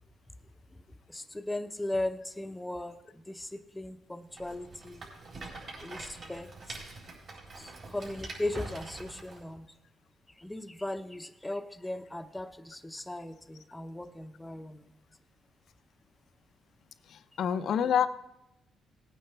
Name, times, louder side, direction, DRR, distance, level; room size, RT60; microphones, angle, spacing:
voice 1, 1.5-2.9 3.8-5.0 5.8-6.0 6.3-6.5 7.9-9.6 10.4-14.8, left 1 dB, 10° left, 10 dB, 0.7 m, -37 dB
Rattle, 4.3-9.4, right 3 dB, 55° right, 4.0 m, -45 dB
voice 2, 17.1-18.1, left 8 dB, 65° left, 12 dB, 0.6 m, -27 dB
18.0 x 9.2 x 3.3 m, 0.91 s
cardioid pair, 90°, 0 cm